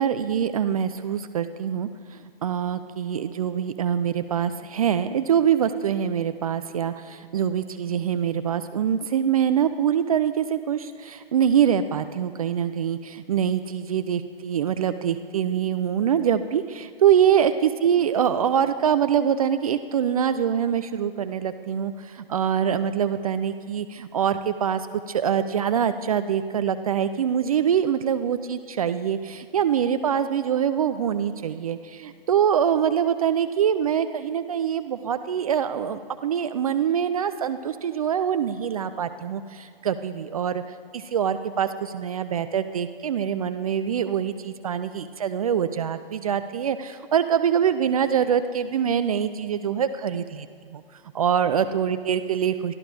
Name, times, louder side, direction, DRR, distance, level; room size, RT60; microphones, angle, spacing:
voice 1, 0.0-50.5 50.7-50.8 51.1-52.7, right 8 dB, 40° right, 11 dB, 0.4 m, -24 dB
23.0 x 13.0 x 2.4 m, 2.1 s
figure-of-eight pair, 125°, 30 cm